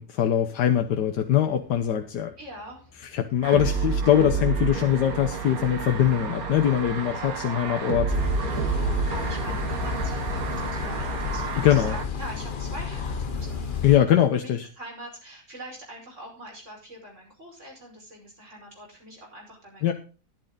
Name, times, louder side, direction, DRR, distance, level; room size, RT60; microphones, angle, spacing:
voice 1, 0.0-2.3 3.1-8.1 11.6-12.0 13.8-14.7 19.8-19.9, left 10 dB, 90° left, 5 dB, 1.5 m, -22 dB
sound 1, 0.7-14.2, left 1 dB, 10° left, 5.1 m, -46 dB
voice 2, 2.4-2.9 5.6-5.9 8.6-13.7 14.4-14.5 14.8-19.9, right 1 dB, 45° right, -1 dB, 5.8 m, -43 dB
sound 2, 3.4-12.1, right 5 dB, 60° right, 1.8 m, -30 dB
sound 3, 8.1-14.0, left 5 dB, 40° left, 0.8 m, -31 dB
12.0 x 11.0 x 3.9 m, 0.35 s
omnidirectional pair, 1.8 m